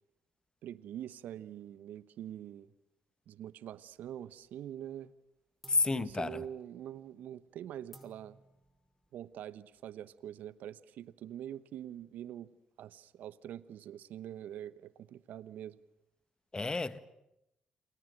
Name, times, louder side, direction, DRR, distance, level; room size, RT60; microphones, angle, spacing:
voice 1, 0.6-2.7 3.3-5.1 5.9-8.4 9.1-12.5 12.8-15.8, right 11 dB, 65° right, 1.0 m, -44 dB
sound 1, 3.9-4.6 4.9-5.3 5.6-10.8, right 1 dB, ahead, 5.6 m, -61 dB
voice 2, 5.7-6.4 16.5-17.0, left 3 dB, 25° left, 1.6 m, -31 dB
28.5 x 21.0 x 9.2 m
hypercardioid pair, 45°, 3 cm